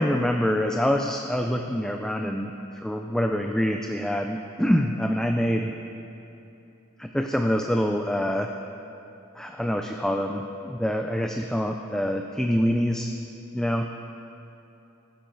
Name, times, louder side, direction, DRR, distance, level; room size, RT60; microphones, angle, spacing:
voice 1, 0.0-2.5 2.8-5.7 7.0-8.5 9.4-13.1 13.5-13.9, equal, 5° left, 4 dB, 0.4 m, -25 dB
15.0 x 11.5 x 3.9 m, 2.9 s
head